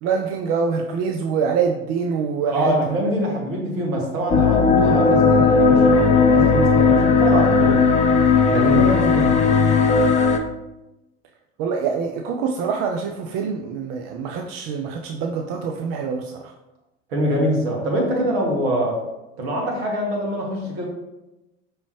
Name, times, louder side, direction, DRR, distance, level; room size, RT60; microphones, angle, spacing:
voice 1, 0.0-2.9 8.9-9.1 11.6-16.5, right 6 dB, 45° right, 2 dB, 0.5 m, -25 dB
voice 2, 2.4-7.8 8.5-9.4 17.1-19.0 19.4-20.9, equal, 65° right, -1 dB, 1.5 m, -24 dB
sound 1, 4.3-10.4, left 5 dB, 25° left, 0.5 m, -16 dB
5.3 x 3.1 x 3.1 m, 0.97 s
hypercardioid pair, 75°, 31 cm